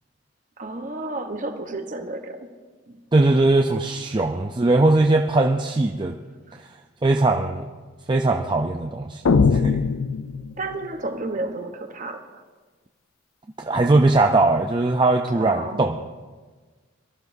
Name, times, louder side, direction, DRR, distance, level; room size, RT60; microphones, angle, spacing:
voice 1, 0.6-2.4 2.9-3.0 10.6-12.2 15.4-15.8, right 2 dB, 40° right, 6 dB, 1.0 m, -31 dB
voice 2, 3.1-6.2 7.0-7.7 8.1-9.2 9.5-9.8 13.6-16.1, right 2 dB, 20° right, 3 dB, 0.4 m, -20 dB
sound 1, 9.3-10.9, left 5 dB, 75° left, 0.4 m, -20 dB
22.5 x 13.0 x 2.6 m, 1.4 s
head